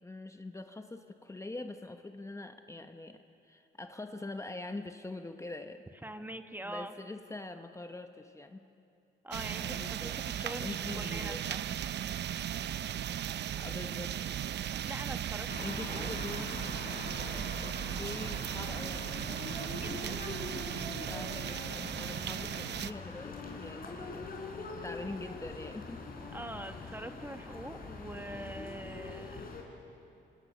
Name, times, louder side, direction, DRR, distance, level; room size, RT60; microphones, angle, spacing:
voice 1, 0.0-5.9 6.6-8.7 9.5-10.2 10.6-11.5 13.6-14.2 15.6-16.5 17.6-19.2 19.7-20.0 20.5-20.8 21.1-21.7 22.0-24.4 24.8-26.0, left 2 dB, 15° left, 7 dB, 1.1 m, -44 dB
voice 2, 6.0-6.9 9.2-11.7 14.8-16.1 19.7-21.0 26.3-29.4, right 1 dB, 10° right, 7 dB, 1.3 m, -44 dB
sound 1, 9.3-22.9, right 10 dB, 60° right, 0.7 m, -37 dB
sound 2, 15.5-29.6, left 3 dB, 45° left, 4.6 m, -43 dB
27.5 x 26.0 x 6.7 m, 2.6 s
cardioid pair, 90°, 20 cm